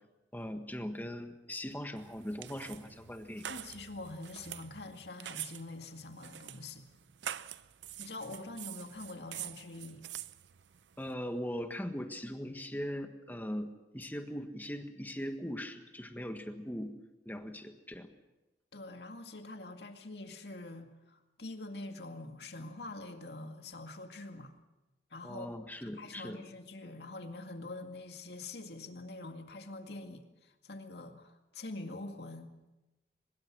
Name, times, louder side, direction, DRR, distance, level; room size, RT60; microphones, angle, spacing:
voice 1, 0.3-3.5 11.0-17.0 17.2-18.1 25.2-26.4, equal, 10° left, 6 dB, 1.5 m, -40 dB
sound 1, 2.0-11.1, right 11 dB, 85° right, 0.6 m, -46 dB
voice 2, 3.5-6.9 8.0-10.0 18.7-24.5 25.1-25.5 25.8-32.5, left 2 dB, 70° left, 5 dB, 2.1 m, -45 dB
23.5 x 21.5 x 6.2 m, 1.0 s
head